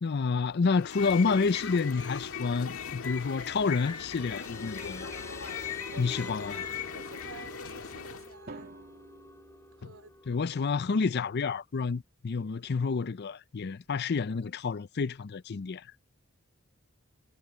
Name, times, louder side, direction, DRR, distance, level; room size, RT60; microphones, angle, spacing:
voice 1, 0.0-5.1 6.0-6.6 9.8-9.9 10.3-15.8, left 4 dB, 50° left, 0.5 m, -29 dB
sound 1, 0.7-8.3, left 6 dB, 85° left, 1.7 m, -39 dB
sound 2, 3.9-10.9, left 1 dB, 15° left, 7.7 m, -49 dB
voice 2, 5.9-8.7 9.7-10.1, right 3 dB, 70° right, 2.7 m, -50 dB
Drum, 8.5-10.6, right 3 dB, 50° right, 2.5 m, -50 dB
head